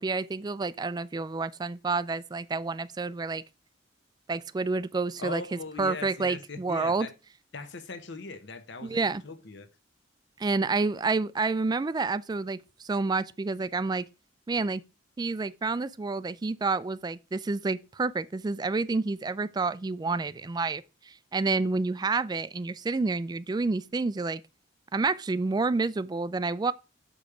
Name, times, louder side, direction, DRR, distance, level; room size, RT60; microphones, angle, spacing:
voice 1, 0.0-3.4 4.3-5.4 5.8-7.1 8.8-9.2 10.4-14.0 14.5-14.8 15.2-24.4 24.9-26.7, right 3 dB, 20° right, 0.3 m, -29 dB
voice 2, 5.2-7.1 7.5-9.7, left 4 dB, 65° left, 1.0 m, -40 dB
6.9 x 5.2 x 4.9 m
head